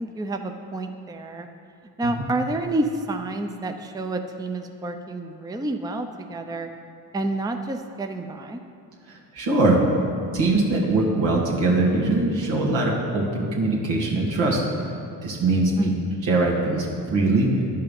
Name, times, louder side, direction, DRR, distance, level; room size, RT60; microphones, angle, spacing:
voice 1, 0.0-1.5 2.0-6.7 7.1-8.6 15.8-16.1, right 2 dB, 10° right, 5 dB, 0.6 m, -29 dB
voice 2, 9.1-9.8 10.3-14.6 15.2-15.7 16.3-17.6, right 2 dB, 75° right, -3 dB, 1.9 m, -22 dB
11.0 x 5.6 x 5.3 m, 2.5 s
supercardioid pair, 60°, 44 cm